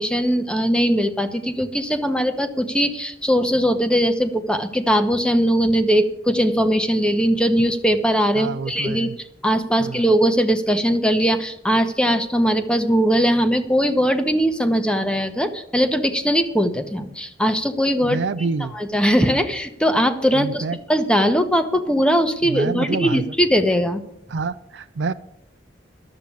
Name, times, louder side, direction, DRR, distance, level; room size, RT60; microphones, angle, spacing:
voice 1, 0.0-9.1 9.4-18.2 18.7-24.0, equal, 5° left, 8 dB, 1.0 m, -20 dB
voice 2, 8.3-9.1 9.8-10.1 18.0-18.7 20.3-20.8 22.4-23.2 24.3-25.1, right 4 dB, 85° right, 11 dB, 0.5 m, -27 dB
11.5 x 7.6 x 8.5 m, 0.76 s
head